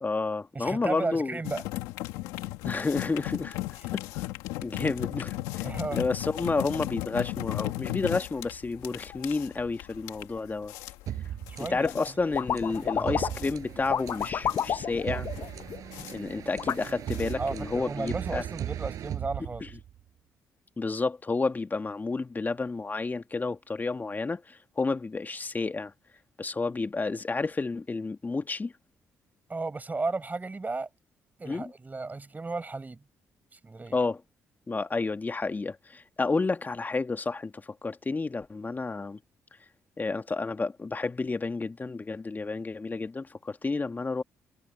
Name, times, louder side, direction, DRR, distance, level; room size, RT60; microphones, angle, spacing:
voice 1, 0.0-1.4 2.6-3.6 3.9-4.2 4.6-10.7 11.7-15.3 16.1-18.4 19.6-19.7 20.8-25.9 26.4-28.7 31.5-31.7 33.9-34.2 34.7-39.2 40.0-44.2, left 3 dB, 30° left, 2.0 m, -30 dB
voice 2, 0.5-1.6 5.6-6.0 11.5-11.9 12.7-13.3 17.4-19.6 29.5-30.9 31.4-33.0 33.5-34.0, right 3 dB, 30° right, 5.2 m, -34 dB
sound 1, 1.4-17.7, left 17 dB, 90° left, 2.1 m, -36 dB
sound 2, 11.1-20.0, right 11 dB, 70° right, 5.3 m, -38 dB
sound 3, 11.8-12.1 12.3-13.5 13.8-16.0 16.6-16.7, left 8 dB, 60° left, 0.7 m, -30 dB
supercardioid pair, 55°, 6 cm